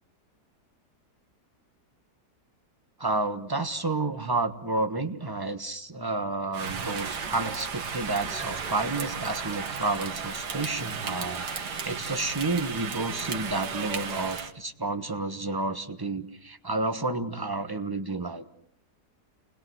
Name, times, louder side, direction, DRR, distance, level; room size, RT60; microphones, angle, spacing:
voice 1, 3.0-11.4 11.8-18.5, right 2 dB, 15° right, 8 dB, 1.2 m, -30 dB
Rain, 6.5-14.5, right 6 dB, 80° right, 2.1 m, -34 dB
28.5 x 21.0 x 7.9 m, 0.68 s
omnidirectional pair, 1.7 m